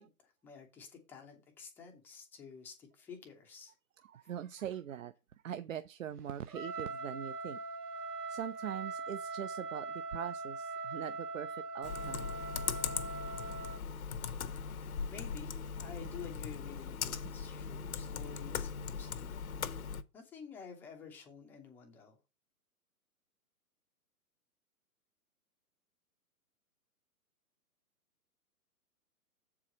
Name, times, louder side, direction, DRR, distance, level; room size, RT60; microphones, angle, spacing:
voice 1, 0.0-3.7 14.7-19.4 20.1-22.2, left 6 dB, 5° left, 0.5 m, -51 dB
voice 2, 4.0-5.1 5.4-7.6 8.3-12.3, right 10 dB, 60° right, 0.6 m, -42 dB
Trumpet, 6.5-13.8, right 3 dB, 80° right, 1.3 m, -41 dB
Computer keyboard, 11.8-20.0, left 6 dB, 65° left, 0.9 m, -39 dB
7.4 x 4.8 x 5.2 m
figure-of-eight pair, 130°, 46 cm